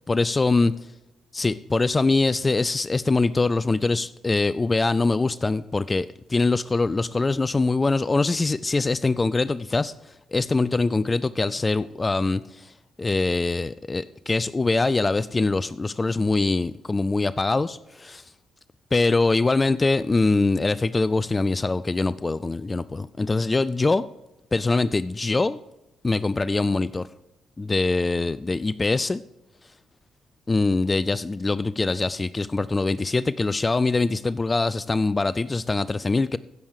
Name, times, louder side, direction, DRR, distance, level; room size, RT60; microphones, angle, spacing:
voice 1, 0.1-0.7 1.3-9.9 10.3-12.7 13.0-18.2 18.9-24.0 24.5-25.6 26.0-27.1 27.6-29.2 30.5-36.4, left 3 dB, 25° left, 17 dB, 0.4 m, -23 dB
16.0 x 7.3 x 4.8 m, 0.94 s
supercardioid pair, 65°, 0 cm